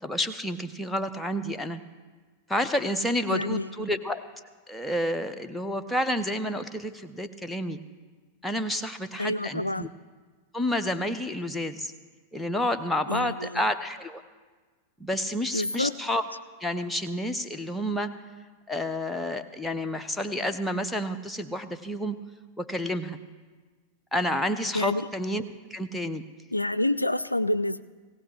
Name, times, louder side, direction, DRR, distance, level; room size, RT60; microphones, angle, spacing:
voice 1, 0.0-1.8 2.5-4.2 4.7-7.8 8.4-9.9 10.5-11.9 12.3-14.2 15.0-16.2 16.6-18.1 18.7-22.2 22.6-23.2 24.1-25.4 25.7-26.2, left 1 dB, 5° left, 7 dB, 0.9 m, -29 dB
voice 2, 3.3-3.9 9.2-9.9 13.1-13.6 15.5-15.9 24.7-25.1 26.5-27.8, left 1 dB, 85° left, 14 dB, 0.3 m, -28 dB
18.5 x 17.0 x 3.4 m, 1.4 s
figure-of-eight pair, 90°, 0 cm